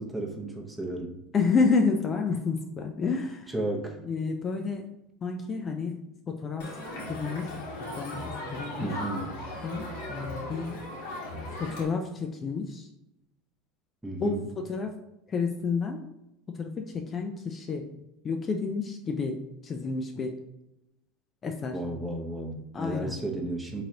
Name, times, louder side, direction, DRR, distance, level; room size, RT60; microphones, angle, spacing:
voice 1, 0.0-1.2 3.5-4.0 8.8-9.3 14.0-14.5 21.7-23.8, right 1 dB, 10° right, 2 dB, 0.8 m, -33 dB
voice 2, 1.3-3.5 4.0-4.9 5.2-6.7 7.1-7.6 8.0-8.9 9.6-10.8 11.6-12.9 14.2-14.4 14.7-14.9 15.3-16.0 16.5-17.9 18.2-20.4 21.4-21.8 22.7-23.2, left 4 dB, 30° left, 4 dB, 0.4 m, -30 dB
Crowd, 6.6-11.8, left 1 dB, 80° left, 1.3 m, -37 dB
3.8 x 3.1 x 2.8 m, 0.87 s
supercardioid pair, 100°, 0 cm